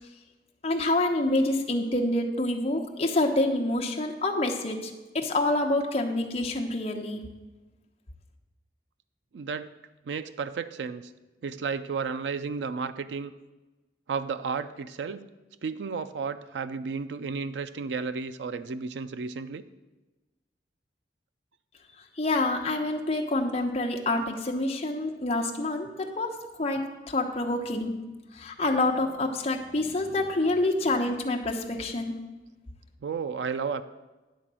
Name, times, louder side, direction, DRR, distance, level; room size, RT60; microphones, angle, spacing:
voice 1, 0.6-7.2 22.2-26.3 26.6-27.9 28.3-32.2, left 2 dB, 35° left, 1 dB, 0.9 m, -27 dB
voice 2, 9.3-9.7 10.1-11.0 11.4-13.3 14.1-15.2 15.6-19.6 33.0-33.8, right 5 dB, 85° right, 12 dB, 0.4 m, -32 dB
10.5 x 3.8 x 7.5 m, 1.2 s
head